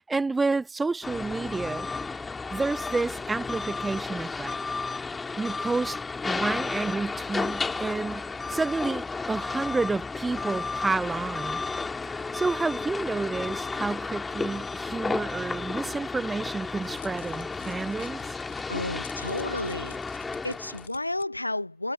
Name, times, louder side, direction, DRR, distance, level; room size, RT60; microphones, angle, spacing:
voice 1, 0.0-1.9 2.5-4.6 5.4-6.0 6.3-11.6 12.1-18.4, right 3 dB, 10° right, 0.8 m, -30 dB
sound 1, 1.0-20.9, left 4 dB, 10° left, 2.6 m, -33 dB
Crackle, 16.3-21.2, left 9 dB, 65° left, 5.4 m, -51 dB
voice 2, 18.7-20.0 20.4-21.9, left 2 dB, 85° left, 1.5 m, -32 dB
figure-of-eight pair, 90°, 0 cm